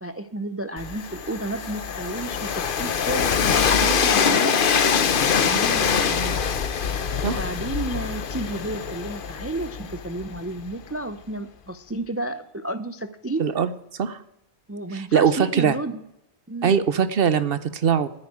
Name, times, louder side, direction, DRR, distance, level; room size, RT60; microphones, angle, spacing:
voice 1, 0.0-4.9 5.3-6.4 7.2-13.5 14.7-16.0 16.5-16.7, right 2 dB, 20° right, 11 dB, 0.4 m, -32 dB
Train, 0.8-10.6, left 6 dB, 55° left, 0.9 m, -24 dB
voice 2, 13.4-13.7 14.0-14.2 14.9-15.8 16.6-18.1, right 7 dB, 60° right, 14 dB, 1.0 m, -21 dB
9.8 x 9.3 x 8.7 m, 0.80 s
omnidirectional pair, 1.1 m